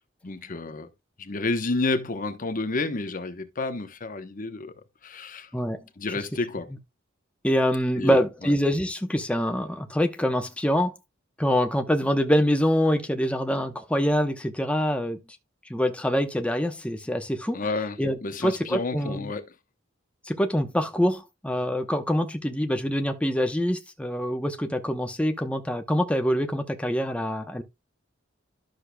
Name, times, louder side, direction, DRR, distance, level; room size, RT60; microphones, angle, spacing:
voice 1, 0.2-0.9 1.2-4.7 5.0-5.5 6.0-6.7 8.0-8.5 17.5-19.5, left 3 dB, 45° left, 0.9 m, -30 dB
voice 2, 7.4-10.9 11.4-15.2 15.7-17.6 18.0-19.3 20.3-27.6, equal, 5° left, 0.9 m, -25 dB
12.0 x 6.5 x 2.2 m
head